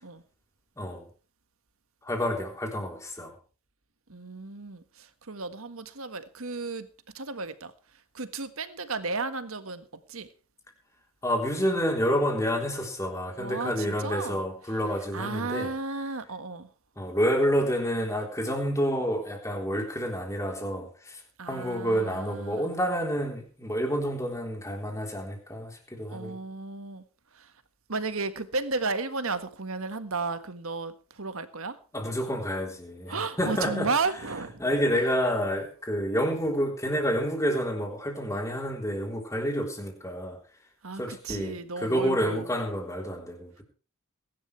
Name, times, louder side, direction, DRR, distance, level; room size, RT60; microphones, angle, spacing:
voice 1, 0.8-1.1 2.0-3.4 11.2-15.7 17.0-21.2 21.5-26.4 31.9-34.1 34.6-40.4 40.9-43.5, equal, 15° left, 3.6 m, -29 dB
voice 2, 4.1-6.9 7.1-7.7 8.1-10.3 13.4-14.4 15.1-16.7 21.4-22.7 26.1-27.0 27.9-31.8 33.1-34.6 40.8-42.4, right 3 dB, 70° right, 1.6 m, -33 dB
22.5 x 11.5 x 3.3 m
head